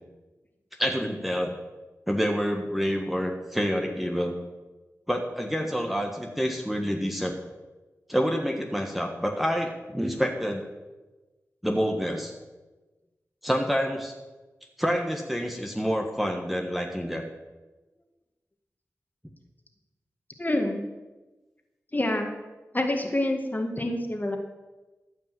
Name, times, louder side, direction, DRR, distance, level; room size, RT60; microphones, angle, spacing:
voice 1, 0.8-1.5 2.1-4.3 5.1-7.3 8.1-10.6 11.6-12.3 13.4-14.1 14.8-17.3, equal, ahead, 1 dB, 1.6 m, -27 dB
voice 2, 20.4-20.8 21.9-22.3 22.7-24.4, left 1 dB, 30° left, 3 dB, 1.9 m, -27 dB
14.0 x 5.6 x 7.7 m, 1.2 s
cardioid pair, 50°, 6 cm